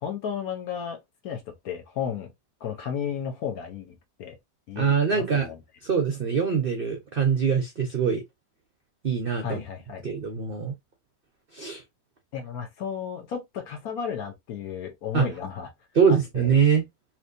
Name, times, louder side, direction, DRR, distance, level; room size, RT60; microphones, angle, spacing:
voice 1, 0.0-2.3 2.6-4.4 4.7-5.6 9.4-10.0 12.3-15.7 16.1-16.5, left 7 dB, 65° left, 1.2 m, -33 dB
voice 2, 4.8-5.5 5.8-8.2 9.0-9.6 10.0-10.7 11.5-11.8 15.1-15.3 15.9-16.9, right 6 dB, 60° right, 0.5 m, -23 dB
3.3 x 2.9 x 2.6 m
omnidirectional pair, 1.8 m